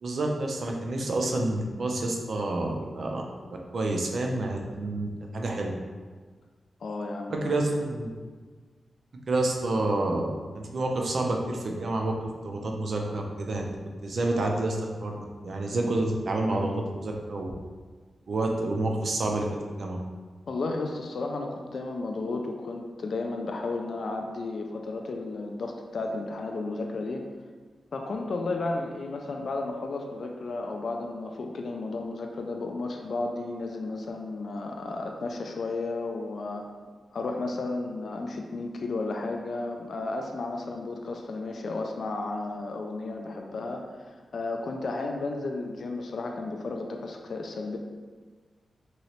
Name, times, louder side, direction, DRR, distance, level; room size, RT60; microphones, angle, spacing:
voice 1, 0.0-3.2 3.5-5.1 5.3-5.7 7.3-8.1 9.3-13.7 14.0-15.2 15.4-17.5 18.3-19.5 19.8-20.0, right 2 dB, 60° right, 1 dB, 0.5 m, -28 dB
voice 2, 6.8-7.5 20.5-27.3 27.9-36.7 37.1-47.8, left 3 dB, 65° left, 2 dB, 0.3 m, -33 dB
3.0 x 2.8 x 2.9 m, 1.5 s
wide cardioid pair, 120°, 0 cm